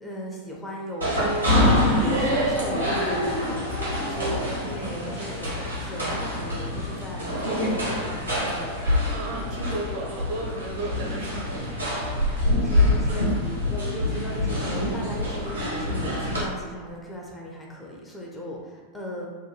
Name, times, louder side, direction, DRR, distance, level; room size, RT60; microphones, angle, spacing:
voice 1, 0.0-9.4 10.7-10.8 12.0-19.3, equal, 10° left, -3 dB, 0.4 m, -37 dB
sound 1, 1.0-16.4, left 1 dB, 80° right, 0.9 m, -25 dB
voice 2, 9.0-11.7, right 1 dB, 45° right, -2 dB, 0.5 m, -34 dB
2.9 x 2.2 x 2.3 m, 1.3 s
figure-of-eight pair, 90°, 0 cm